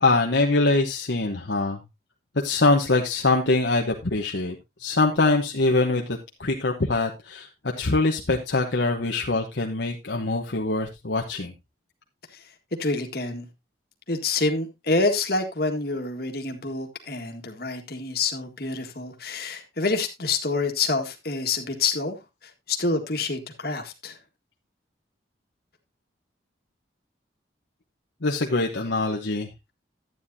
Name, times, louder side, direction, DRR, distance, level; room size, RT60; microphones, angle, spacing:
voice 1, 0.0-1.8 2.4-11.5 28.2-29.7, left 2 dB, 70° left, 1.1 m, -24 dB
voice 2, 12.3-13.5 14.1-24.2, left 3 dB, 55° left, 1.8 m, -27 dB
12.0 x 9.3 x 2.7 m
head